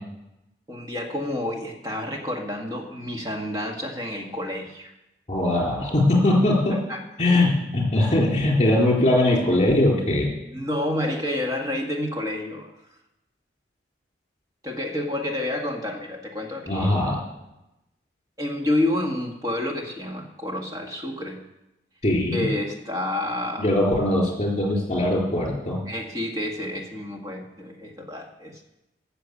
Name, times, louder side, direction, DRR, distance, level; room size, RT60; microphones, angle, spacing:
voice 1, 0.7-4.9 6.9-7.0 10.5-12.7 14.6-16.9 18.4-21.4 22.3-23.7 25.9-28.6, left 1 dB, 20° right, 1 dB, 1.7 m, -29 dB
voice 2, 5.3-6.8 7.2-10.3 16.7-17.2 22.0-22.5 23.6-25.8, left 1 dB, 35° left, -1 dB, 3.9 m, -21 dB
14.0 x 6.7 x 8.4 m, 0.94 s
head